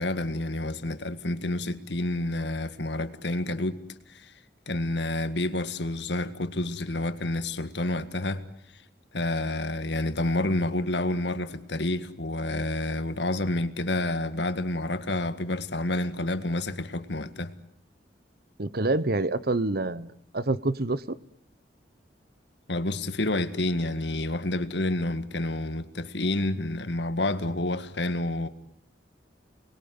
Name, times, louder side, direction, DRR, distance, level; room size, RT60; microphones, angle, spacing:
voice 1, 0.0-4.3 4.7-8.4 8.7-8.8 9.1-17.5 22.7-28.5, left 1 dB, 70° left, 1.8 m, -29 dB
voice 2, 18.6-21.2, right 2 dB, 55° right, 1.1 m, -27 dB
29.5 x 21.0 x 9.6 m
head